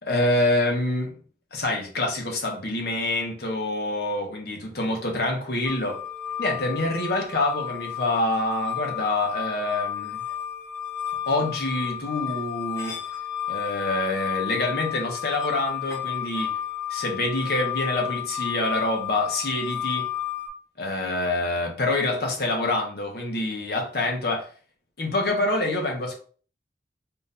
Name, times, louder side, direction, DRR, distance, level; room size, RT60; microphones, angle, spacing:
voice 1, 0.0-1.2 1.5-6.0 6.4-10.2 11.3-13.0 13.5-16.5 16.9-20.1 20.8-24.5 25.0-26.2, left 2 dB, 60° left, 1.1 m, -26 dB
sound 1, 5.7-20.5, left 10 dB, 15° left, 1.1 m, -32 dB
3.8 x 2.5 x 4.1 m
head